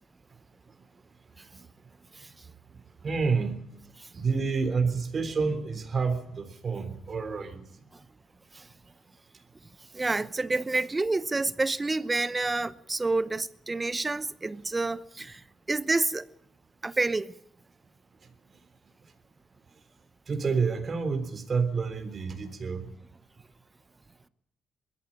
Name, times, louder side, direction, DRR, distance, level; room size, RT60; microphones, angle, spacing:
voice 1, 2.7-3.6 4.1-7.6 20.3-22.9, right 5 dB, 40° right, 3.5 m, -29 dB
voice 2, 9.9-15.4 15.7-16.3 16.8-17.3, right 3 dB, 20° right, 0.9 m, -28 dB
21.0 x 14.0 x 9.9 m
cardioid pair, 90°, 0 cm